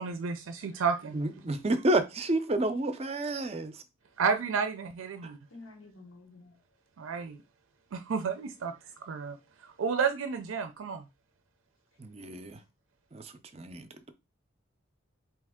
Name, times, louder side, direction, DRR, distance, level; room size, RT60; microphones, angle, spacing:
voice 1, 0.0-1.2 4.2-5.4 7.0-7.4 7.9-8.7 9.1-9.4 9.8-11.1, right 5 dB, 90° right, 0.4 m, -31 dB
voice 2, 1.1-3.7 5.2-5.3 12.0-12.6 13.1-13.9, right 1 dB, 30° right, 0.5 m, -30 dB
voice 3, 5.5-6.6 8.6-9.3 12.6-12.7, left 3 dB, 90° left, 1.1 m, -53 dB
4.2 x 2.9 x 3.5 m
head